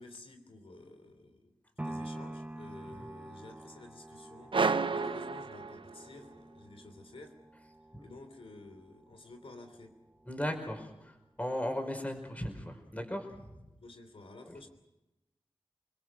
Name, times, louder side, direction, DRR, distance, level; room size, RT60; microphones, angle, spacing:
voice 1, 0.0-1.5 1.8-7.4 8.0-10.0 13.7-14.7, left 2 dB, 75° left, 5 dB, 3.2 m, -51 dB
sound 1, 1.8-9.9 10.4-10.5, right 1 dB, 15° right, 0.8 m, -47 dB
sound 2, 4.5-6.3, right 4 dB, 60° right, 0.8 m, -31 dB
voice 2, 10.2-13.5 14.4-14.5, equal, 15° left, 4 dB, 5.1 m, -37 dB
28.5 x 21.0 x 6.3 m, 0.97 s
wide cardioid pair, 70°, 10 cm